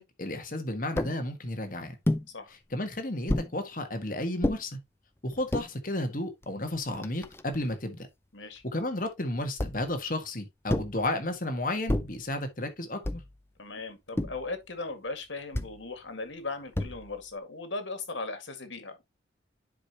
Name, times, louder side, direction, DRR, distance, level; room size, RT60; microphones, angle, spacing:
voice 1, 0.0-2.0 2.7-4.8 5.2-8.1 8.7-13.2, left 1 dB, 45° left, 1.6 m, -33 dB
sound 1, 1.0-1.2 2.0-2.3 3.3-3.5 4.4-4.6 5.3-5.7 6.4-6.5 6.7-7.8 9.6-9.9 10.7-11.0 11.9-12.2 13.0-13.4 14.2-14.5 15.5-15.8 16.7-17.2, left 1 dB, 15° left, 0.5 m, -30 dB
voice 2, 13.6-19.1, left 3 dB, 90° left, 1.9 m, -38 dB
10.5 x 4.8 x 2.9 m
head